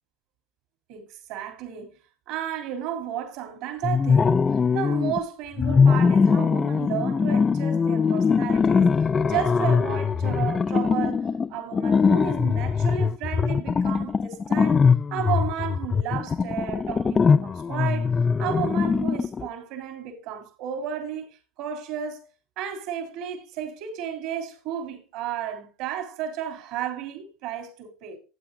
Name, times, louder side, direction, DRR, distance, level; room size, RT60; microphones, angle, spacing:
voice 1, 0.9-1.9 2.3-4.4 4.7-8.9 9.3-14.8 15.1-18.1 18.4-22.3 22.6-28.2, right 9 dB, 70° right, 3.2 m, -33 dB
sound 1, 3.8-5.2 5.6-19.5, left 5 dB, 30° left, 0.4 m, -22 dB
14.5 x 8.7 x 2.6 m
hypercardioid pair, 85°, 0 cm